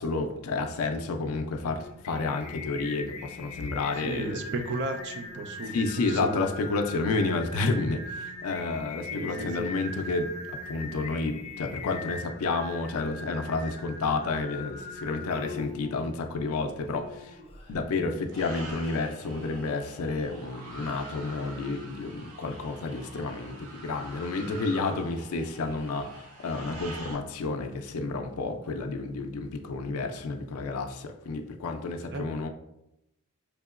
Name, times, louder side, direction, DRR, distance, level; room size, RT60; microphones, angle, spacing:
voice 1, 0.0-4.4 5.7-17.4 17.7-32.5, left 3 dB, 75° left, 5 dB, 0.4 m, -30 dB
Singing, 1.5-17.8, left 2 dB, 30° left, 0.7 m, -41 dB
voice 2, 4.0-6.5 9.1-9.7 32.1-32.2, right 2 dB, 55° right, 6 dB, 0.4 m, -34 dB
sound 1, 18.3-27.2, right 2 dB, 75° right, 0.8 m, -45 dB
4.6 x 2.8 x 2.4 m, 0.86 s
head